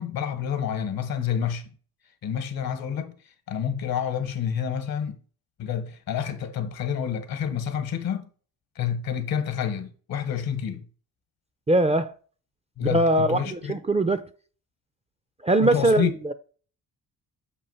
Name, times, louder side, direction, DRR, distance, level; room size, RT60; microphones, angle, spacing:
voice 1, 0.0-1.7 2.2-3.1 3.5-5.2 5.6-8.3 8.8-10.9 12.8-13.8 15.6-16.1, left 8 dB, 65° left, 1.1 m, -28 dB
voice 2, 11.7-12.1 12.9-14.3 15.4-16.3, right 1 dB, 15° right, 0.4 m, -22 dB
6.9 x 2.5 x 5.5 m
supercardioid pair, 65°, 38 cm